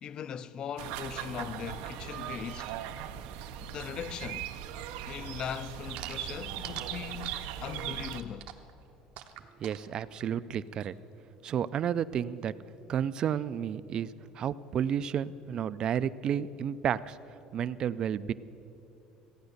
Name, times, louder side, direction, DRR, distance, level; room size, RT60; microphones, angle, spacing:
voice 1, 0.0-2.7 3.6-4.5 5.1-8.5, left 8 dB, 35° left, 0.4 m, -39 dB
sound 1, 0.8-8.2, right 10 dB, 90° right, 0.6 m, -39 dB
sound 2, 5.9-10.9, right 12 dB, 65° right, 0.9 m, -46 dB
voice 2, 9.6-10.9 11.4-12.5 12.9-14.1 14.4-17.2 17.5-18.3, right 9 dB, 35° right, 0.3 m, -31 dB
15.0 x 9.1 x 6.6 m
cardioid pair, 155°, 2 cm